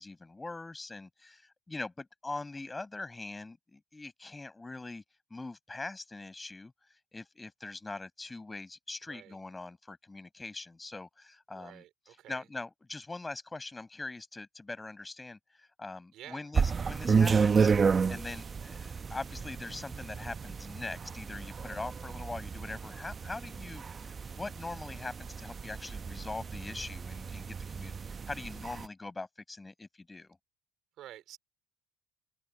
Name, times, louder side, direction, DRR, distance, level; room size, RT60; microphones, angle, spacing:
voice 1, 0.0-5.0 5.3-6.7 7.1-11.8 12.3-17.7 18.1-30.4, left 3 dB, 20° left, 5.6 m, -42 dB
voice 2, 9.1-9.4 11.5-12.5 16.1-16.5 31.0-31.4, right 13 dB, 65° right, 4.5 m, -50 dB
sound 1, 16.5-28.9, right 5 dB, 35° right, 1.0 m, -31 dB
open air
hypercardioid pair, 60°, 0 cm